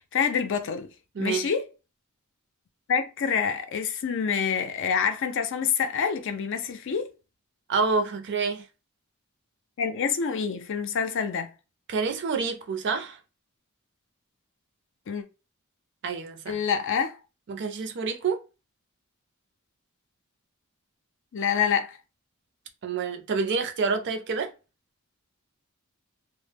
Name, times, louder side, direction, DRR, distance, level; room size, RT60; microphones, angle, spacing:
voice 1, 0.1-0.9 1.2-1.6 2.9-7.1 9.8-11.5 15.1-15.2 16.5-17.2 21.3-22.0, left 6 dB, 60° left, 0.4 m, -27 dB
voice 2, 1.1-1.5 7.7-8.7 11.9-13.2 16.0-16.6 17.5-18.4 22.8-24.5, right 4 dB, 55° right, 0.5 m, -28 dB
2.0 x 2.0 x 3.3 m
head